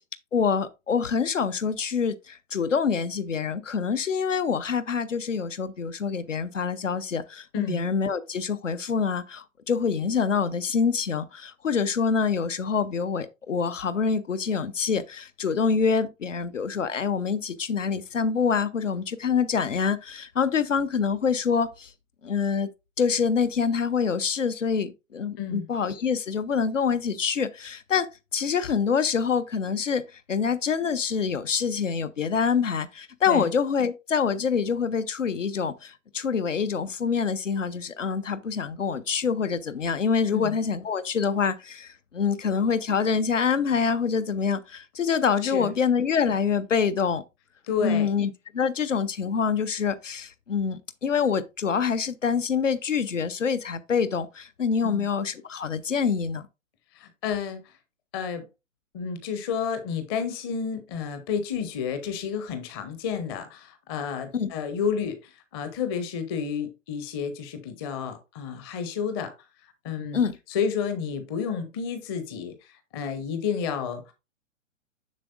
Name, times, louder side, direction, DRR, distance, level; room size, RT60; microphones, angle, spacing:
voice 1, 0.3-21.9 22.2-22.7 23.0-47.2 47.8-56.5 64.3-64.5 70.1-70.4, left 6 dB, 65° left, 0.8 m, -26 dB
voice 2, 47.7-48.1 54.8-55.1 56.9-57.6 58.1-58.4 58.9-69.3 69.8-70.2 70.5-72.5 72.9-74.0, left 7 dB, 20° left, 0.7 m, -30 dB
7.5 x 6.2 x 2.5 m
figure-of-eight pair, 120°, 40 cm